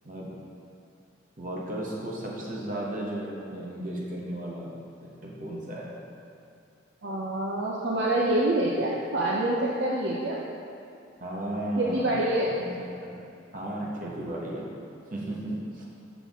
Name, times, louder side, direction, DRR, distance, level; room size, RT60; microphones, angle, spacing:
voice 1, 1.4-4.7 5.2-6.0 11.2-12.7 13.0-13.2 13.5-14.7 15.1-15.9, right 1 dB, 45° right, -4 dB, 1.1 m, -34 dB
voice 2, 7.0-10.4 11.8-12.5, right 1 dB, 65° right, -4 dB, 0.5 m, -26 dB
6.0 x 5.7 x 3.5 m, 2.5 s
head